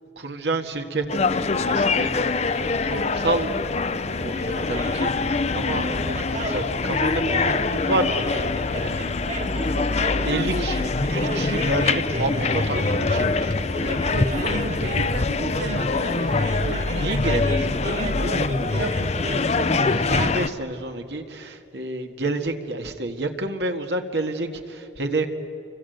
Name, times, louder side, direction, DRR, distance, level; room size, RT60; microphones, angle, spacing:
voice 1, 0.1-8.9 10.2-14.2 16.9-25.3, right 2 dB, 70° right, 1.8 m, -30 dB
sound 1, 1.1-20.5, left 3 dB, 40° left, 0.7 m, -24 dB
sound 2, 4.5-20.3, right 1 dB, 45° right, 2.0 m, -34 dB
voice 2, 10.3-10.8 13.8-17.1, right 3 dB, 90° right, 1.0 m, -35 dB
29.5 x 25.5 x 8.0 m
head